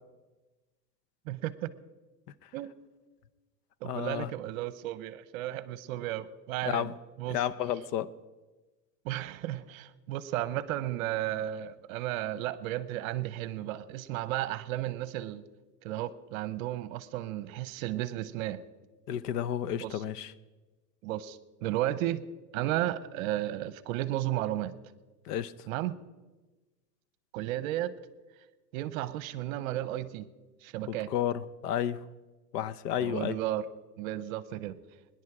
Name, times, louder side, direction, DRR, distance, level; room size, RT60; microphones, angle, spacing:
voice 1, 1.3-1.7 2.5-2.7 3.8-6.9 7.2-7.4 9.0-15.4 15.8-18.6 19.8-20.0 21.0-22.2 22.5-24.7 25.7-25.9 27.3-27.9 28.7-30.3 30.6-31.1 33.0-33.7 34.0-34.8, right 14 dB, 55° right, 16 dB, 0.9 m, -33 dB
voice 2, 3.8-4.3 6.7-6.9 7.3-8.1 19.1-20.3 25.3-25.5 30.9-32.0 32.5-33.4, left 10 dB, 70° left, 16 dB, 0.9 m, -32 dB
22.5 x 10.5 x 4.9 m, 1.2 s
supercardioid pair, 135°, 49 cm